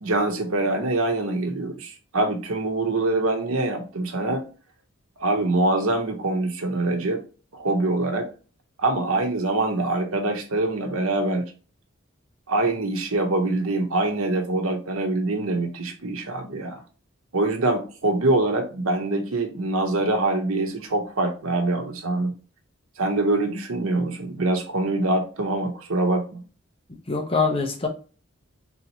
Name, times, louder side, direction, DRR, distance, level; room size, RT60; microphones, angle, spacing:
voice 1, 0.0-4.4 5.2-7.2 7.5-8.3 8.8-11.5 12.5-16.8 17.3-22.3 23.0-26.4, right 2 dB, 90° right, 0.9 m, -24 dB
voice 2, 26.9-27.9, left 4 dB, 25° left, 0.6 m, -24 dB
3.8 x 2.9 x 2.8 m
head